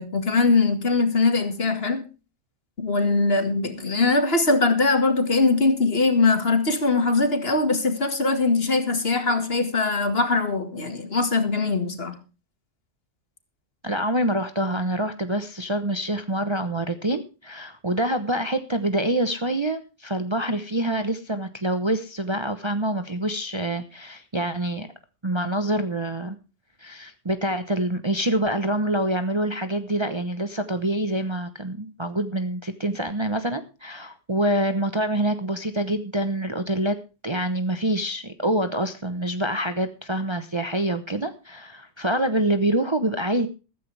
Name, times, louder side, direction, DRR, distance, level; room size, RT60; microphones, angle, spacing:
voice 1, 0.0-2.0 2.8-12.2, left 3 dB, 50° left, 8 dB, 2.2 m, -21 dB
voice 2, 13.8-24.9 25.2-26.4 26.8-37.0 37.2-43.5, right 1 dB, 25° right, 9 dB, 0.9 m, -26 dB
14.5 x 14.0 x 3.4 m, 0.31 s
omnidirectional pair, 1.3 m